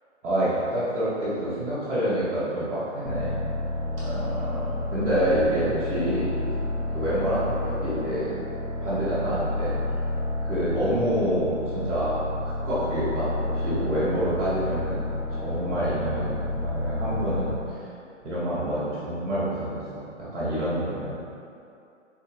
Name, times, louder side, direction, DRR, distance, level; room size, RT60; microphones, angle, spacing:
voice 1, 0.2-3.4 4.0-6.3 6.9-8.3 8.8-9.7 10.4-15.0 15.3-17.6 18.2-19.8 20.3-21.1, right 1 dB, 5° right, -17 dB, 0.8 m, -27 dB
sound 1, 3.0-17.8, left 2 dB, 30° right, 0.4 m, -30 dB
3.6 x 3.2 x 3.2 m, 2.6 s
hypercardioid pair, 160°, 37 cm